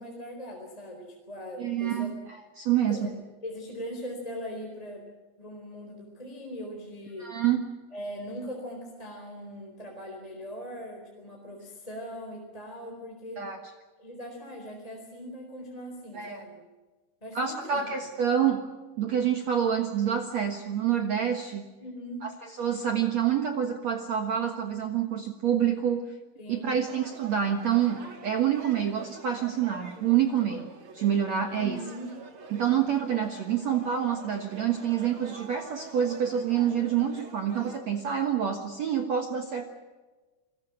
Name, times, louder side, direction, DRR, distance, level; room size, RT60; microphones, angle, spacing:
voice 1, 0.0-2.1 2.9-3.2 3.4-5.1 5.4-7.3 7.9-13.4 14.0-16.6 17.2-17.8 21.8-22.3 26.4-26.8 31.4-32.1, equal, 10° left, 0 dB, 3.8 m, -40 dB
voice 2, 1.6-2.1 2.6-3.0 7.2-7.6 13.4-13.6 16.1-16.4 17.3-18.6 19.0-21.6 22.2-26.0 26.5-30.7 30.9-31.8 32.5-39.7, right 9 dB, 65° right, 5 dB, 1.7 m, -27 dB
sound 1, 26.9-37.8, right 4 dB, 35° right, 2.5 m, -47 dB
29.5 x 21.0 x 6.0 m, 1.3 s
omnidirectional pair, 5.4 m